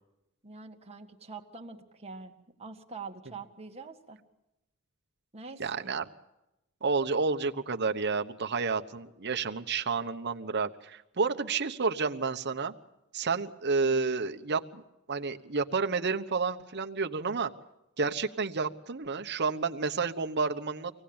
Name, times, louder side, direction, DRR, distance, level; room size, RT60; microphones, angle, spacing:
voice 1, 0.4-4.2 5.3-5.9, right 4 dB, 30° right, 3 dB, 1.8 m, -45 dB
voice 2, 5.6-6.1 6.8-12.7 13.1-14.8 15.1-17.5 18.0-20.9, right 4 dB, 55° right, 6 dB, 1.1 m, -30 dB
25.0 x 18.0 x 8.8 m, 0.92 s
head